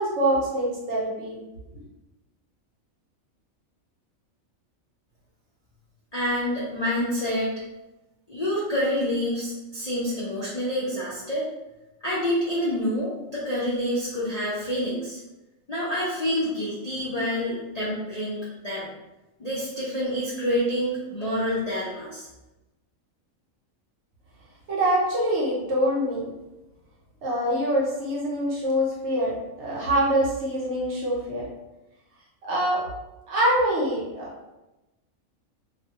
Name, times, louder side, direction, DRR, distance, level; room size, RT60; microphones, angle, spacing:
voice 1, 0.0-1.4 24.7-26.3 27.2-31.5 32.5-32.8 33.3-34.3, right 1 dB, 60° right, -5 dB, 1.0 m, -24 dB
voice 2, 6.1-7.5 8.3-11.5 12.0-15.2 15.7-18.9 19.4-22.3, equal, 50° left, -8 dB, 0.5 m, -27 dB
2.5 x 2.3 x 2.8 m, 1.0 s
omnidirectional pair, 1.4 m